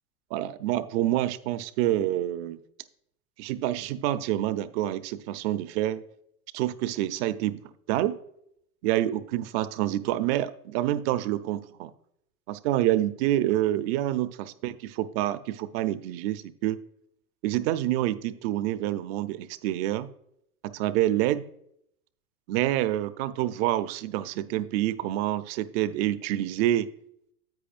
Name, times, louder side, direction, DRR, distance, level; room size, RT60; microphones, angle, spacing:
voice 1, 0.3-2.6 3.4-6.0 6.5-7.6 7.9-8.2 8.8-11.9 12.5-16.8 17.4-20.1 20.6-21.5 22.5-26.9, right 14 dB, 45° right, 13 dB, 0.6 m, -27 dB
10.5 x 8.1 x 2.5 m, 0.73 s
hypercardioid pair, 120°, 44 cm